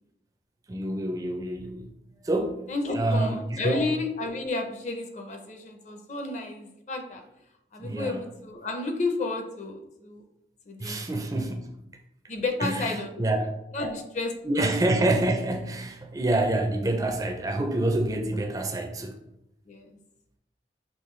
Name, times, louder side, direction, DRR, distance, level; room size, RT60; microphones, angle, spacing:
voice 1, 0.7-1.9 2.2-3.8 7.8-8.3 10.8-11.7 12.6-13.5 14.4-19.1, right 1 dB, 20° right, 4 dB, 0.4 m, -27 dB
voice 2, 2.7-7.2 7.7-10.2 10.7-11.0 11.3-11.4 12.3-13.3 13.7-14.7 19.7-19.9, left 3 dB, 40° left, 4 dB, 0.6 m, -32 dB
5.5 x 3.1 x 3.1 m, 0.82 s
head